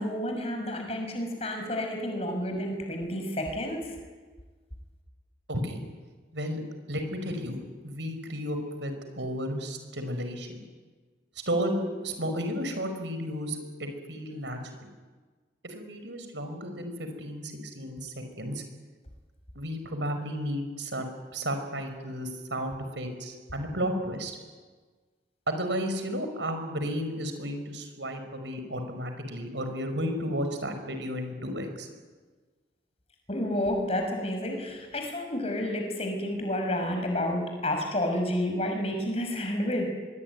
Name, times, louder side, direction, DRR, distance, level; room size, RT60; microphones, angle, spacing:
voice 1, 0.0-4.0 33.3-39.9, left 1 dB, 35° left, 4 dB, 6.1 m, -30 dB
voice 2, 6.9-7.6 7.8-10.6 11.5-14.9 15.6-18.6 19.6-21.1 21.3-24.4 25.5-31.9, equal, 85° right, 7 dB, 5.4 m, -33 dB
24.0 x 23.5 x 9.6 m, 1.4 s
head